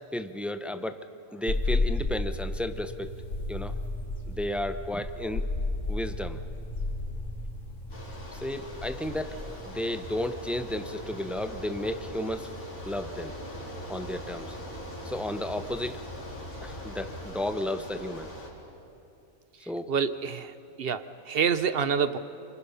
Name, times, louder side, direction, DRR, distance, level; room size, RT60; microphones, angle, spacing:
voice 1, 0.1-3.1 3.5-3.8 4.3-5.5 5.9-6.4 8.3-12.5 12.8-13.3 13.9-14.6 15.0-16.0 16.6-18.3 19.7-19.9, left 1 dB, ahead, 9 dB, 0.4 m, -33 dB
sound 1, 1.5-17.6, left 2 dB, 65° left, 2.2 m, -35 dB
Bicycle, 7.9-18.5, left 1 dB, 90° left, 4.4 m, -42 dB
voice 2, 19.9-22.2, right 6 dB, 50° right, 12 dB, 0.9 m, -27 dB
28.0 x 25.5 x 5.6 m, 2.6 s
omnidirectional pair, 1.4 m